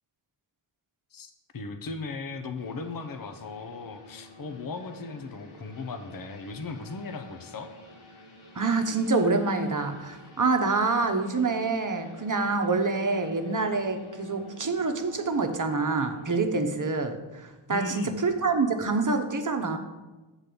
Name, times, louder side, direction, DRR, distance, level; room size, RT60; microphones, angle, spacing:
voice 1, 1.1-7.7 17.7-18.2, left 3 dB, 45° left, 7 dB, 0.9 m, -37 dB
sound 1, 2.5-16.4, left 1 dB, 80° left, 2.4 m, -50 dB
voice 2, 8.5-19.8, right 3 dB, 40° right, 6 dB, 1.1 m, -26 dB
7.6 x 4.1 x 6.9 m, 1.2 s
cardioid pair, 50°, 50 cm